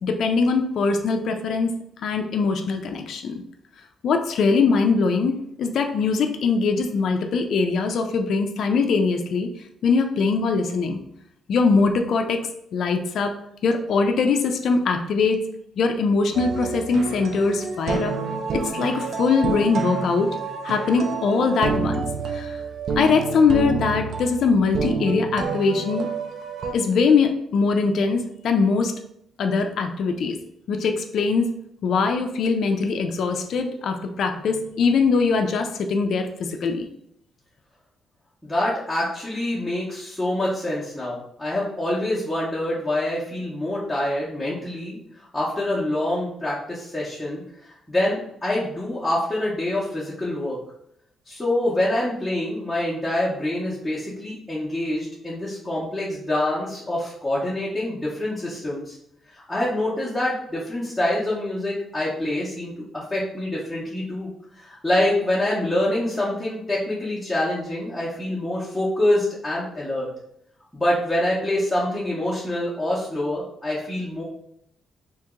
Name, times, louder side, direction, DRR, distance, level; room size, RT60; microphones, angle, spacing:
voice 1, 0.0-3.4 4.0-5.3 5.6-9.5 9.8-11.0 11.5-13.3 13.6-15.4 15.8-18.1 18.7-20.3 20.6-22.0 22.3-22.6 23.0-26.1 26.7-28.9 29.4-30.4 30.7-31.5 31.8-36.9, left 4 dB, 60° left, 4 dB, 0.3 m, -22 dB
sound 1, 16.3-26.7, right 4 dB, 50° right, 0.3 m, -28 dB
voice 2, 38.4-45.0 45.3-50.6 51.3-59.0 59.3-64.3 64.6-70.1 70.7-74.2, left 1 dB, 5° left, -8 dB, 0.7 m, -26 dB
2.9 x 2.8 x 3.6 m, 0.75 s
cardioid pair, 165°, 0 cm